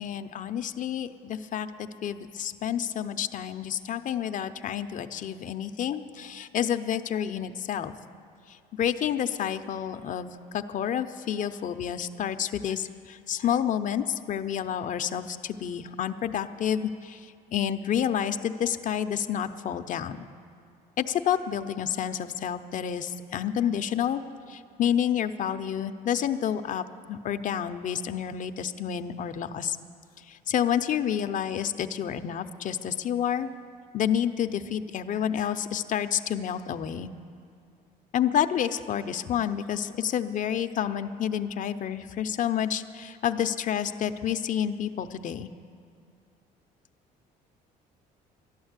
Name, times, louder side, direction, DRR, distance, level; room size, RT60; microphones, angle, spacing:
voice 1, 0.0-7.9 8.5-20.3 21.0-24.2 24.5-29.8 30.2-33.5 33.9-37.1 38.1-45.5, left 9 dB, 50° left, 9 dB, 0.6 m, -29 dB
12.0 x 12.0 x 8.1 m, 2.3 s
cardioid pair, 110°, 17 cm